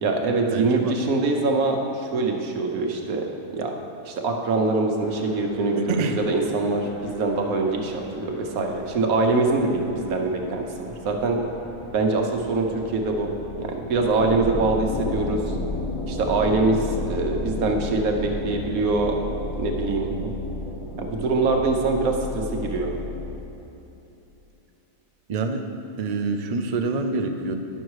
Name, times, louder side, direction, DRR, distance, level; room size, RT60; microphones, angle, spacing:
voice 1, 0.0-3.2 3.5-3.7 4.0-6.0 6.3-11.4 11.9-15.6 16.1-19.2 19.5-20.1 21.0-23.0, right 3 dB, 90° right, 2 dB, 1.4 m, -24 dB
voice 2, 0.5-1.0 5.9-6.2 20.1-20.3 25.3-25.6 26.0-27.6, right 3 dB, 60° right, 5 dB, 0.4 m, -26 dB
sound 1, 5.0-23.4, left 2 dB, 30° left, 0.6 m, -34 dB
10.5 x 6.4 x 4.7 m, 3.0 s
omnidirectional pair, 1.5 m